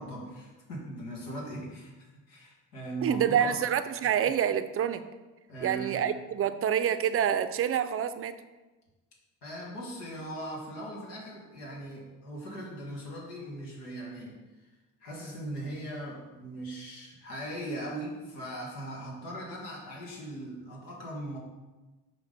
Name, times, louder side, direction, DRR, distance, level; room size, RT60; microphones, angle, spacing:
voice 1, 0.0-1.9 2.3-3.6 5.5-6.1 9.4-14.4 15.0-21.4, right 1 dB, 85° left, -2 dB, 1.7 m, -39 dB
voice 2, 3.0-5.0 5.6-8.4, right 9 dB, 30° right, 11 dB, 0.5 m, -27 dB
5.9 x 4.0 x 5.3 m, 1.2 s
hypercardioid pair, 65°, 46 cm